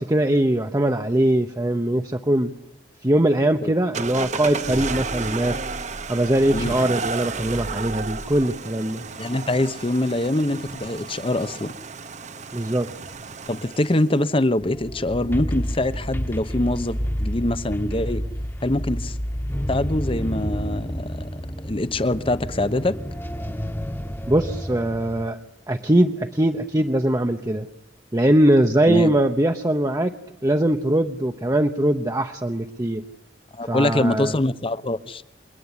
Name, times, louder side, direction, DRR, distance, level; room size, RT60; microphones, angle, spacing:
voice 1, 0.0-2.5 3.0-5.6 6.1-9.0 12.5-12.9 24.3-25.4 25.7-27.7 28.1-30.2 30.4-33.0 33.7-34.4, right 1 dB, 20° right, 0.9 m, -21 dB
sound 1, 3.9-14.2, right 4 dB, 40° right, 1.1 m, -32 dB
voice 2, 9.2-11.7 13.5-18.2 18.6-19.1 19.7-23.0 28.9-29.1 33.5-35.2, left 1 dB, 30° left, 1.0 m, -24 dB
sound 2, 14.6-25.3, equal, 15° left, 1.3 m, -29 dB
28.5 x 20.5 x 9.9 m
head